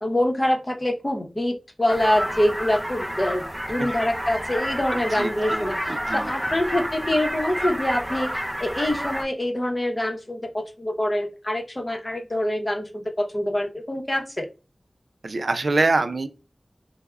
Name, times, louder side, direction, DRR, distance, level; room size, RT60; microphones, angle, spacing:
voice 1, 0.0-8.3 8.6-14.5, left 1 dB, 35° left, 2 dB, 0.7 m, -25 dB
sound 1, 1.9-9.2, equal, 15° right, 0.4 m, -30 dB
voice 2, 4.9-6.3 15.2-16.3, right 3 dB, 80° right, 9 dB, 0.3 m, -25 dB
3.3 x 2.0 x 2.2 m, 0.31 s
wide cardioid pair, 45°, 0 cm